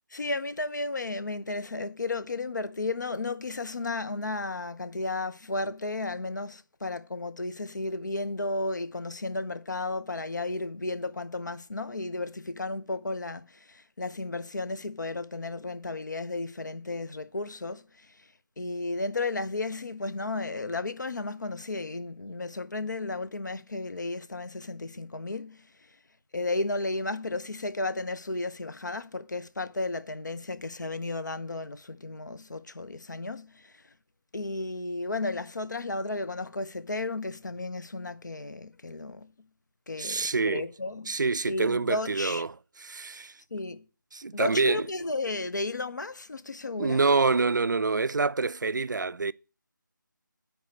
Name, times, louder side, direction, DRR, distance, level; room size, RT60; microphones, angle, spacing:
voice 1, 0.1-17.8 18.6-25.6 26.3-33.8 34.3-39.3 39.9-41.1 41.5-42.4 43.5-43.8 44.3-47.0, left 2 dB, 60° left, 0.8 m, -33 dB
voice 2, 40.0-40.7 41.1-43.3 44.1-44.9 46.8-49.3, right 4 dB, 65° right, 0.4 m, -26 dB
9.4 x 4.8 x 6.4 m
figure-of-eight pair, 160°, 11 cm